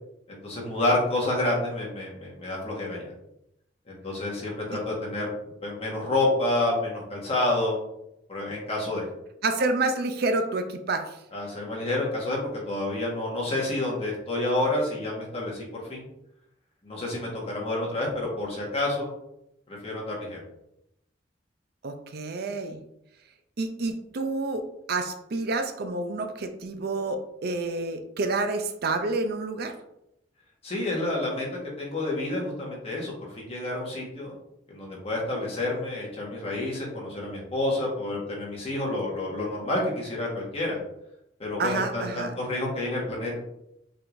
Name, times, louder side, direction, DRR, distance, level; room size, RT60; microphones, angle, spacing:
voice 1, 0.3-3.1 3.9-5.3 5.6-7.8 8.3-9.0 11.3-16.0 16.8-19.1 19.7-20.4 30.6-34.4 34.7-40.8 41.4-43.4, left 2 dB, 35° left, -3 dB, 1.5 m, -29 dB
voice 2, 9.4-11.2 21.8-22.8 23.6-24.6 24.9-29.7 41.6-42.3, right 3 dB, 60° right, 7 dB, 0.5 m, -28 dB
5.6 x 3.4 x 2.6 m, 0.81 s
head